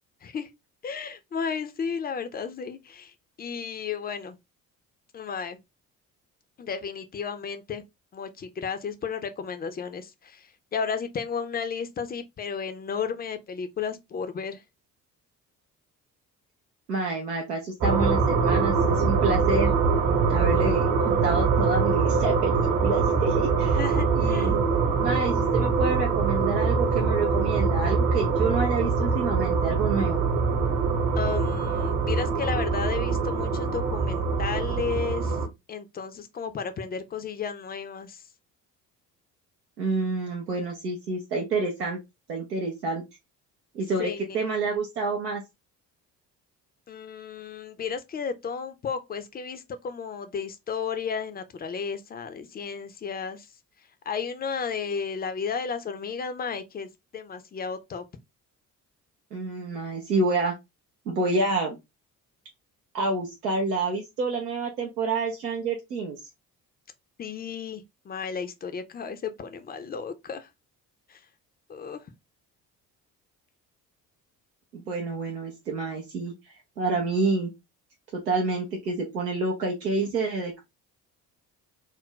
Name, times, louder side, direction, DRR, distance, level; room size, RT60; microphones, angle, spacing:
voice 1, 0.8-3.1 3.4-4.4 5.1-5.6 6.6-7.8 8.1-14.6 23.7-24.6 31.2-35.4 35.7-38.2 44.0-44.4 46.9-53.5 54.1-58.0 67.2-70.5 71.1-71.2 71.7-72.0, left 6 dB, 20° left, 0.4 m, -33 dB
voice 2, 16.9-19.7 20.3-23.8 24.2-24.6 25.0-30.2 39.8-42.0 42.3-43.0 43.7-45.4 59.3-60.5 61.1-61.8 62.9-66.2 74.7-76.3 76.8-77.5 78.1-80.6, right 3 dB, 90° right, 0.6 m, -28 dB
sound 1, 17.8-35.5, right 5 dB, 45° right, 1.0 m, -24 dB
2.5 x 2.1 x 3.6 m
figure-of-eight pair, 45°, 46 cm